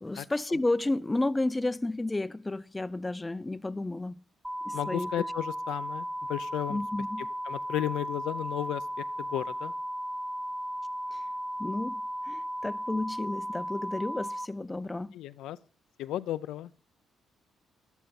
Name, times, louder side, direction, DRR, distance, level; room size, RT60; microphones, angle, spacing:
voice 1, 0.0-4.2 4.6-5.1 6.7-7.3 11.1-11.2 11.6-15.1, left 2 dB, 15° left, 0.5 m, -32 dB
sound 1, 4.4-14.5, equal, 10° right, 1.1 m, -35 dB
voice 2, 4.7-6.8 7.2-9.7 15.1-15.6 16.0-16.7, left 13 dB, 85° left, 0.5 m, -34 dB
12.5 x 12.0 x 4.3 m
cardioid pair, 90°, 0 cm